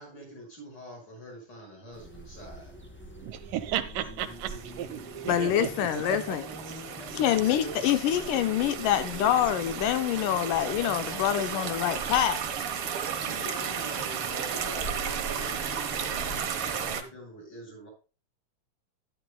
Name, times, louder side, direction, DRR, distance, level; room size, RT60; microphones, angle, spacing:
voice 1, 0.0-3.3 6.8-7.8 13.2-17.9, equal, 30° left, 6.0 m, -45 dB
sound 1, 1.9-17.0, right 2 dB, 10° left, 0.7 m, -43 dB
voice 2, 3.2-6.8 7.1-7.4 9.7-9.8, right 11 dB, 80° right, 2.5 m, -35 dB
sound 2, 4.2-17.0, right 8 dB, 55° right, 1.7 m, -35 dB
voice 3, 5.3-6.4 7.1-12.4, left 11 dB, 85° left, 2.4 m, -26 dB
12.0 x 11.0 x 2.2 m
omnidirectional pair, 3.8 m